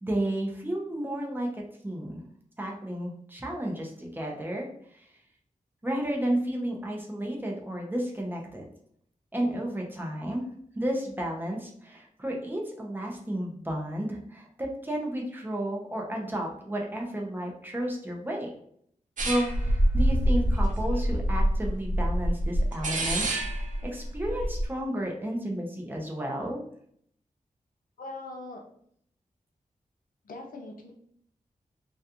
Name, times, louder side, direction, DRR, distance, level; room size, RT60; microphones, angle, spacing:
voice 1, 0.0-2.2 2.6-4.7 4.9-5.1 5.8-8.7 9.3-10.5 10.8-18.5 19.2-26.6, right 1 dB, 15° right, -1 dB, 0.5 m, -32 dB
sound 1, 19.2-24.7, equal, 65° right, 0.5 m, -26 dB
voice 2, 28.0-28.6 30.2-30.9, left 2 dB, 80° left, 2 dB, 0.5 m, -41 dB
2.3 x 2.3 x 2.7 m, 0.65 s
wide cardioid pair, 125°, 14 cm